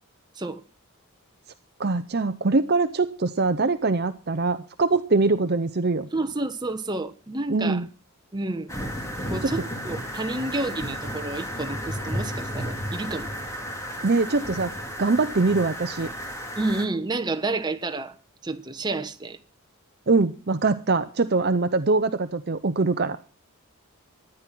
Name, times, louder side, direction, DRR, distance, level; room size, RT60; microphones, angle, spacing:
voice 1, 1.8-6.1 7.5-7.9 9.4-9.5 14.0-14.7 15.0-16.1 20.1-23.2, right 3 dB, 45° right, 0.7 m, -23 dB
voice 2, 6.1-7.8 8.3-8.7 9.3-13.3 16.6-18.1 18.4-19.4, right 2 dB, 20° right, 1.1 m, -30 dB
sound 1, 8.7-16.9, equal, 15° left, 2.3 m, -33 dB
13.5 x 10.0 x 6.1 m
head